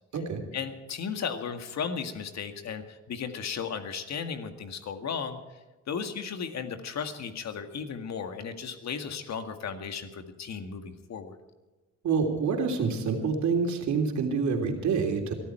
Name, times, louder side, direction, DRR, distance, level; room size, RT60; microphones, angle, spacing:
voice 1, 0.5-5.4 5.9-11.4, left 6 dB, 60° left, 7 dB, 2.0 m, -35 dB
voice 2, 12.0-15.3, right 5 dB, 70° right, 3 dB, 3.4 m, -27 dB
23.0 x 12.5 x 4.6 m, 1.2 s
cardioid pair, 90°, 30 cm